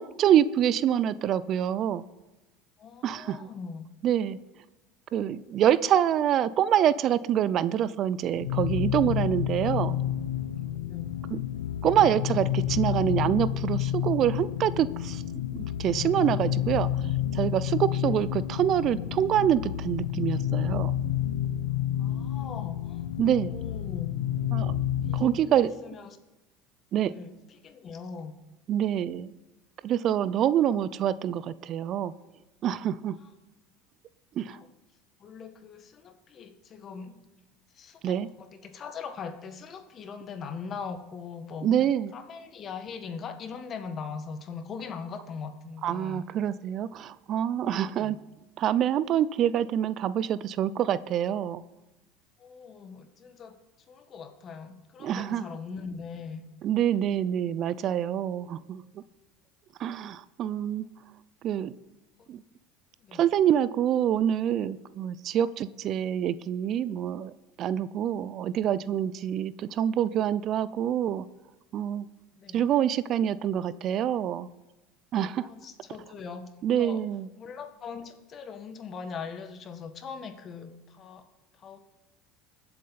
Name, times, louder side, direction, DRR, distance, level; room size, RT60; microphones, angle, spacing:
voice 1, 0.0-2.0 3.0-3.5 4.0-4.4 5.1-10.0 11.3-11.4 11.8-15.2 15.5-16.9 17.3-20.9 23.2-23.5 24.5-24.7 25.1-25.7 26.9-27.1 28.7-29.3 29.8-32.1 32.6-33.2 34.4-34.6 38.0-38.3 41.6-42.1 45.8-48.2 48.6-51.6 55.0-55.4 56.6-58.8 59.8-60.9 61.4-61.8 62.3-62.4 63.1-67.3 67.6-71.2 71.7-72.1 72.5-74.5 75.1-75.5 76.6-77.3, right 10 dB, 50° right, 17 dB, 0.5 m, -26 dB
voice 2, 2.8-3.9 10.9-11.1 18.0-18.2 22.0-24.1 25.0-26.2 27.0-28.3 33.2-33.3 34.5-34.7 35.2-37.3 37.7-41.8 42.1-46.3 47.9-48.2 52.4-53.6 53.9-56.4 62.2-62.3 63.0-63.2 72.3-72.7 75.4-76.5 76.8-77.1 77.4-81.3 81.5-81.8, left 5 dB, 40° left, 8 dB, 1.7 m, -41 dB
sound 1, 8.3-25.3, left 11 dB, 85° left, 0.9 m, -30 dB
22.5 x 7.8 x 4.2 m, 1.0 s
hypercardioid pair, 80°, 0 cm